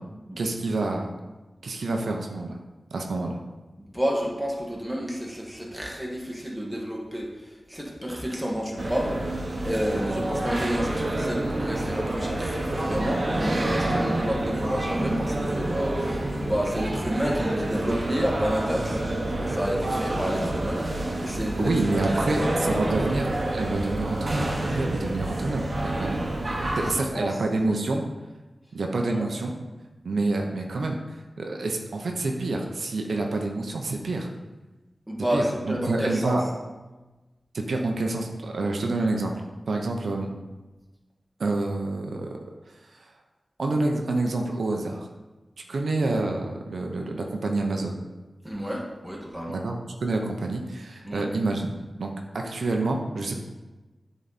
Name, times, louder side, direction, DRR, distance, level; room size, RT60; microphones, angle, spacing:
voice 1, 0.4-1.1 1.6-2.6 2.9-3.4 21.6-26.1 26.8-28.0 28.7-29.5 30.0-31.0 31.4-34.3 35.3-36.4 37.5-39.3 39.7-40.3 41.4-42.3 42.9-43.1 43.6-45.1 45.7-48.0 49.5-51.7 52.0-53.4, right 2 dB, 85° right, 2 dB, 0.8 m, -28 dB
voice 2, 3.8-7.3 7.7-9.4 9.6-19.0 19.3-22.5 26.0-26.2 26.8-27.4 29.0-29.3 35.1-36.4 48.4-49.6 51.0-51.3, equal, 5° right, -2 dB, 1.6 m, -30 dB
sound 1, 8.8-26.9, right 1 dB, 45° right, 1.2 m, -28 dB
9.3 x 4.1 x 4.2 m, 1.2 s
wide cardioid pair, 80°, 0 cm